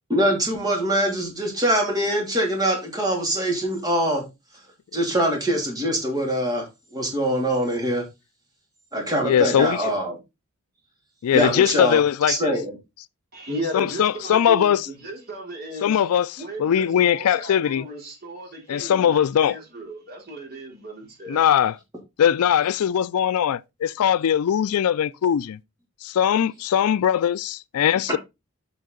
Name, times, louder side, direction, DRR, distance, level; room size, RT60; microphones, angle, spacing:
voice 1, 0.1-4.2 4.9-6.6 6.9-8.0 8.9-10.1 11.3-12.0 12.3-12.7 28.1-28.2, right 1 dB, 15° right, 2.8 m, -23 dB
voice 2, 9.2-9.8 11.2-12.5 13.7-14.9 15.8-17.9 18.7-19.6 21.3-21.8 22.2-25.6 26.0-28.2, left 9 dB, 80° left, 0.3 m, -20 dB
voice 3, 13.3-16.1 16.4-21.5, right 1 dB, 45° right, 3.2 m, -35 dB
7.7 x 5.6 x 3.8 m
head